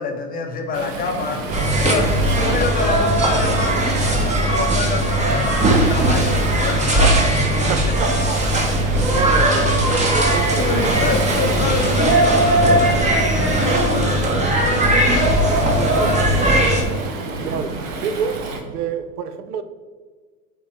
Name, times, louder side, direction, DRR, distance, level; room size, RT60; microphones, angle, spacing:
voice 1, 0.0-8.1 10.6-15.7, left 4 dB, 20° left, 0.6 m, -27 dB
Waves surf, 0.7-18.6, right 3 dB, 60° right, 1.2 m, -29 dB
sound 1, 1.5-16.8, right 1 dB, 15° right, 0.8 m, -18 dB
voice 2, 7.7-11.1 15.8-16.7 17.0-19.6, right 7 dB, 90° right, 0.7 m, -29 dB
8.8 x 3.7 x 3.0 m
hypercardioid pair, 125°, 45 cm